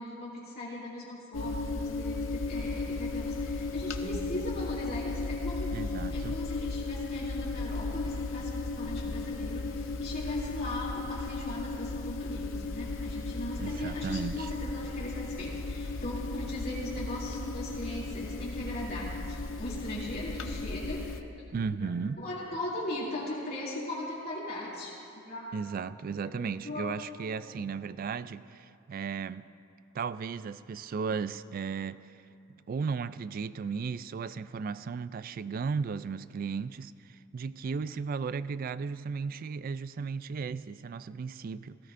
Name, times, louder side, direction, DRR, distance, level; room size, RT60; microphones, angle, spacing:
voice 1, 0.0-21.1 21.8-24.9 25.3-25.5 26.2-27.0 27.3-27.4, left 1 dB, 50° left, -7 dB, 2.9 m, -39 dB
sound 1, 1.3-21.2, left 3 dB, 85° left, 0.7 m, -35 dB
voice 2, 5.7-6.4 13.6-14.5 21.5-22.2 25.5-29.5 29.9-32.0 32.7-41.8, right 5 dB, 45° right, 15 dB, 0.3 m, -35 dB
18.5 x 16.0 x 2.5 m, 2.5 s
head